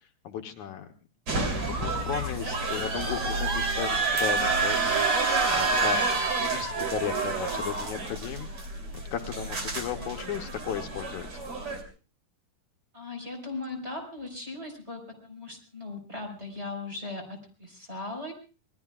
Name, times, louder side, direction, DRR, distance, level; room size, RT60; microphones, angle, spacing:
voice 1, 0.2-0.9 1.4-8.5 9.1-11.3, left 9 dB, 70° left, 4 dB, 2.4 m, -35 dB
sound 1, 1.3-11.8, right 3 dB, 45° right, 4.0 m, -28 dB
voice 2, 12.9-18.3, left 2 dB, 20° right, 3 dB, 4.7 m, -38 dB
27.5 x 20.5 x 2.4 m, 0.35 s
omnidirectional pair, 3.6 m